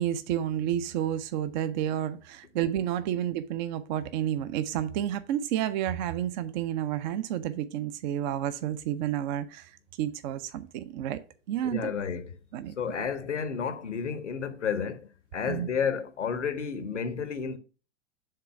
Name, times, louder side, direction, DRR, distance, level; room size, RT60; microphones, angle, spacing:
voice 1, 0.0-9.7 10.0-11.2 11.5-11.9 12.5-12.7 15.5-15.7, right 11 dB, 40° right, 0.5 m, -30 dB
voice 2, 11.6-12.4 12.8-17.6, left 6 dB, 75° left, 0.9 m, -31 dB
6.7 x 3.7 x 5.8 m
figure-of-eight pair, 90°, 36 cm